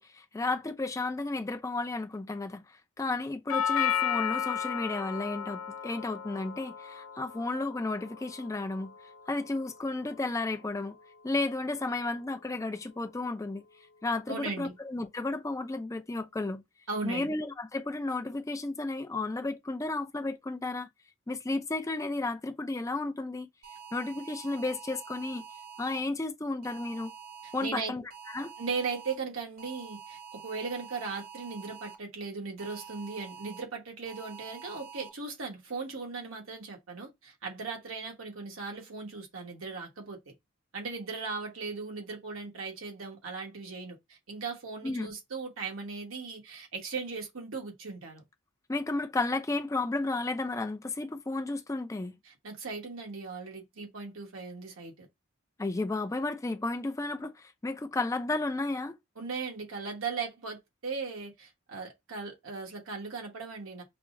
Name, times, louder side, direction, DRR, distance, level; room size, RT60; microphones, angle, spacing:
voice 1, 0.0-2.6 3.0-8.9 9.3-11.0 11.2-13.6 14.0-16.6 17.0-20.9 21.3-23.5 23.9-25.4 25.8-27.1 27.5-28.0 28.3-28.5 44.8-45.1 48.7-52.1 55.6-59.0, left 2 dB, 15° left, 0.4 m, -33 dB
Doorbell, 3.5-11.6, left 8 dB, 80° left, 0.4 m, -35 dB
voice 2, 14.3-14.7 16.9-17.3 27.4-27.9 28.6-40.2 40.7-48.2 52.2-55.1 59.2-63.8, right 4 dB, 80° right, 1.2 m, -38 dB
sound 1, 23.6-26.0 26.6-27.7 28.1-29.2 29.6-31.9 32.6-33.6 34.1-35.1, right 7 dB, 50° right, 1.0 m, -47 dB
5.7 x 2.0 x 2.5 m
head